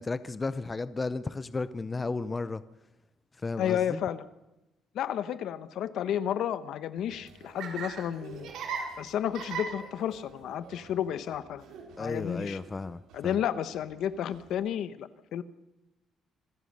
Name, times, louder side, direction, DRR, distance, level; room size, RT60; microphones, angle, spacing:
voice 1, 0.0-2.6 3.4-4.0 12.0-13.4, left 3 dB, 20° left, 0.6 m, -34 dB
voice 2, 3.6-4.2 4.9-8.5 9.0-11.6 12.0-12.6 13.1-15.4, left 10 dB, 70° left, 1.1 m, -32 dB
Laughter, 7.0-14.5, right 5 dB, 80° right, 5.0 m, -42 dB
26.5 x 15.0 x 6.7 m
cardioid pair, 145°, 0 cm